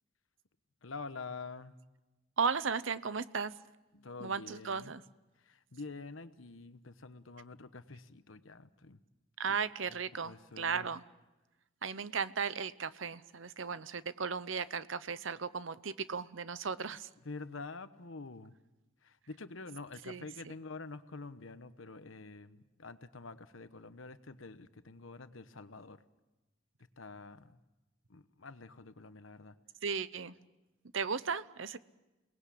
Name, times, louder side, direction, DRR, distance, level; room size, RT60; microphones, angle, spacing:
voice 1, 0.8-1.7 3.9-4.9 5.4-9.0 9.9-10.0 10.2-10.9 17.2-18.5 19.0-26.0 27.0-27.6 28.1-29.6, left 3 dB, 75° left, 12 dB, 1.1 m, -47 dB
voice 2, 2.4-3.5 4.2-5.0 9.4-11.0 11.8-17.1 20.0-20.6 29.8-30.4 30.9-31.8, right 5 dB, 75° right, 15 dB, 0.8 m, -36 dB
28.5 x 19.5 x 8.5 m, 1.1 s
head